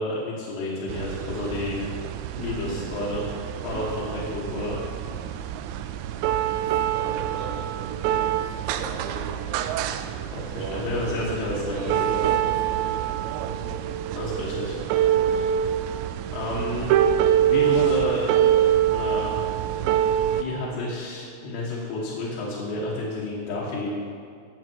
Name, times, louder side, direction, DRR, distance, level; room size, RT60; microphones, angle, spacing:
voice 1, 0.0-1.8 2.3-4.8 10.3-12.2 14.1-14.8 15.1-15.5 16.3-17.2 17.5-18.3 18.9-19.5 20.4-23.9, left 2 dB, 65° left, -6 dB, 3.4 m, -30 dB
sound 1, 0.9-20.4, right 10 dB, 90° right, 2.5 m, -25 dB
voice 2, 6.4-9.3 10.5-11.2 11.5-13.7 15.1-15.4, right 3 dB, 75° right, -10 dB, 6.0 m, -37 dB
15.5 x 7.3 x 4.6 m, 2.3 s
omnidirectional pair, 5.6 m